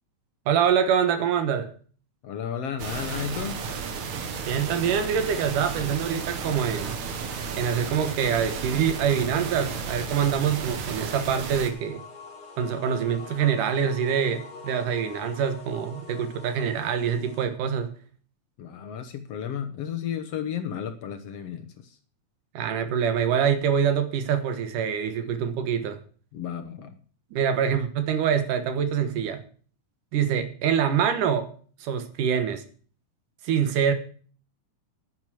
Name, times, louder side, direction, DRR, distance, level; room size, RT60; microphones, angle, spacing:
voice 1, 0.5-1.7 4.5-7.0 7.6-12.0 12.6-17.9 22.5-26.0 27.3-29.4 30.1-31.5 31.8-32.6 33.4-33.9, right 8 dB, 90° right, 9 dB, 2.9 m, -25 dB
voice 2, 2.2-3.6 18.6-22.0 26.3-27.0, left 8 dB, 65° left, 8 dB, 1.8 m, -33 dB
sound 1, 2.8-11.7, right 5 dB, 65° right, 2.7 m, -33 dB
sound 2, 11.4-17.4, left 4 dB, 30° left, 3.5 m, -44 dB
10.0 x 9.6 x 6.2 m, 0.43 s
omnidirectional pair, 3.6 m